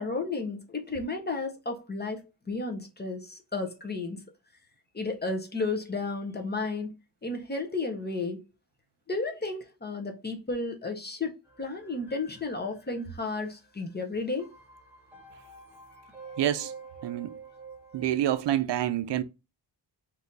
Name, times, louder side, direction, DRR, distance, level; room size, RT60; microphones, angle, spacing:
voice 1, 0.0-2.2 2.5-4.2 4.9-7.0 7.2-8.4 9.1-11.3 11.6-14.5, left 3 dB, 25° left, 0.7 m, -33 dB
sound 1, 11.4-18.6, right 4 dB, 5° right, 1.4 m, -49 dB
voice 2, 16.4-16.7 17.0-17.4 17.9-19.2, right 12 dB, 70° right, 0.5 m, -27 dB
3.7 x 2.7 x 3.9 m
wide cardioid pair, 155°, 44 cm